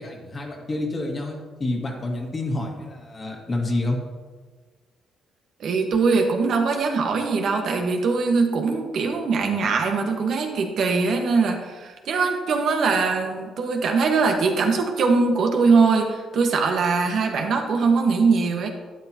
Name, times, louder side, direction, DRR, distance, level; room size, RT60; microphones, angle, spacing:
voice 1, 0.0-4.0, left 2 dB, 30° left, 0 dB, 1.9 m, -28 dB
voice 2, 5.6-18.7, right 4 dB, 65° right, 3 dB, 1.4 m, -21 dB
12.0 x 9.3 x 2.9 m, 1.4 s
cardioid pair, 90°, 0 cm